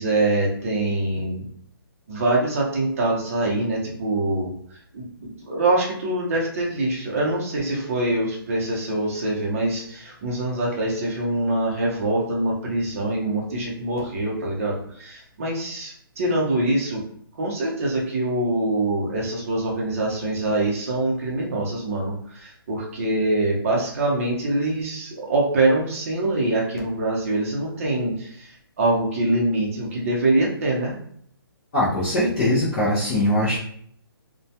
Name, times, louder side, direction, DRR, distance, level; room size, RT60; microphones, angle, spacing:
voice 1, 0.0-1.5 2.1-4.5 4.9-17.0 17.4-30.9, right 2 dB, 35° right, -3 dB, 0.7 m, -24 dB
voice 2, 31.7-33.6, left 1 dB, 15° left, -10 dB, 0.4 m, -21 dB
2.2 x 2.1 x 2.7 m, 0.64 s
hypercardioid pair, 170°, 13 cm